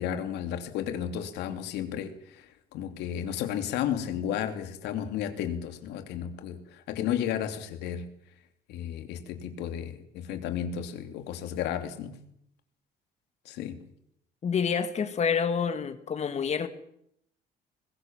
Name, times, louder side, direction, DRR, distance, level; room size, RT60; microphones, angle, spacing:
voice 1, 0.0-8.1 8.7-12.2 13.4-13.8, left 9 dB, 85° left, 7 dB, 3.0 m, -33 dB
voice 2, 14.4-16.7, left 6 dB, 40° left, 10 dB, 2.4 m, -28 dB
22.0 x 21.0 x 7.5 m, 0.72 s
cardioid pair, 110°, 17 cm